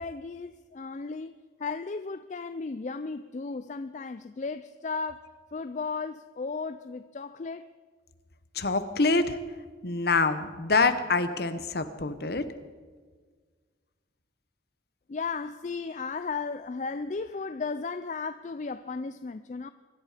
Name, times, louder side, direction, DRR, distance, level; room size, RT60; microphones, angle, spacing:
voice 1, 0.0-1.3 1.6-7.7 15.1-19.7, left 4 dB, 40° left, 0.4 m, -35 dB
voice 2, 8.5-9.4 9.8-12.5, left 3 dB, 55° left, 1.0 m, -26 dB
24.0 x 11.0 x 5.0 m
head